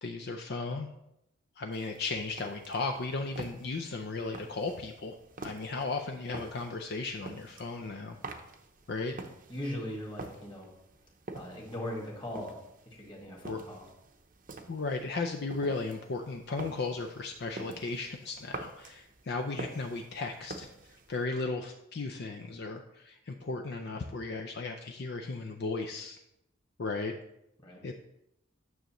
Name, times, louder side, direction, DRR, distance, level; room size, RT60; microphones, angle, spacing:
voice 1, 0.0-0.9 1.6-5.1 5.4-8.2 8.9-9.1 13.4-13.6 14.7-20.7 21.1-26.2 26.8-27.1 27.8-27.9, left 3 dB, 55° left, 4 dB, 0.5 m, -35 dB
sound 1, 1.7-21.3, right 3 dB, 45° right, 0.7 m, -48 dB
voice 2, 9.5-10.7 11.3-12.6 12.9-13.9 27.6-27.8, left 1 dB, 25° left, -1 dB, 1.7 m, -39 dB
9.2 x 6.3 x 3.0 m, 0.83 s
head